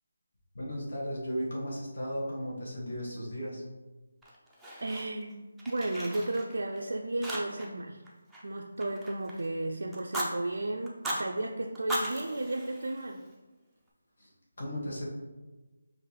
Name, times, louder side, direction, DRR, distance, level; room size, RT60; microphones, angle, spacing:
voice 1, 0.5-3.6 14.2-14.3 14.6-15.1, equal, 55° left, -5 dB, 1.2 m, -35 dB
Fire, 4.2-5.3 5.6-6.8 7.2-9.5 9.9-10.3 10.9-11.2 11.7-13.3, right 1 dB, ahead, 0.3 m, -37 dB
voice 2, 4.8-8.0 8.4-13.2, right 2 dB, 85° right, 1 dB, 0.3 m, -34 dB
5.0 x 2.5 x 3.3 m, 1.2 s
figure-of-eight pair, 175°, 0 cm